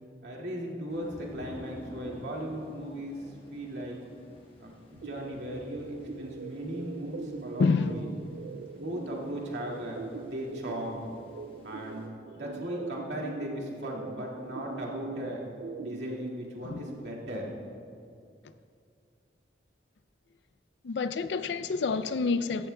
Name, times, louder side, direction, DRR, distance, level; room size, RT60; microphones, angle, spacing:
voice 1, 0.2-4.0 4.6-8.1 8.8-11.0 11.6-12.1 12.4-15.4 15.8-17.5, equal, 85° right, 2.1 m, -37 dB
sound 1, 0.9-12.1, equal, 30° left, 1.2 m, -52 dB
sound 2, 5.0-16.3, right 5 dB, 65° right, 0.3 m, -42 dB
voice 2, 7.6-7.9 16.6-16.8 20.8-22.7, left 4 dB, 85° left, 0.4 m, -27 dB
15.5 x 13.5 x 2.2 m
head